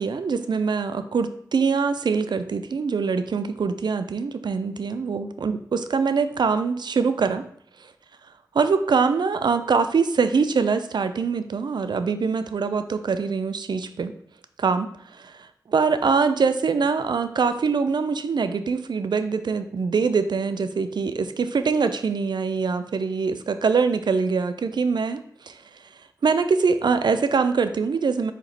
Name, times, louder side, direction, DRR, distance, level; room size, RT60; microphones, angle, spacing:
voice 1, 0.0-7.5 8.5-14.1 14.6-25.2 25.5-25.6 26.2-28.3, right 5 dB, 75° right, 10 dB, 0.3 m, -23 dB
4.1 x 2.9 x 4.0 m, 0.64 s
cardioid pair, 45°, 8 cm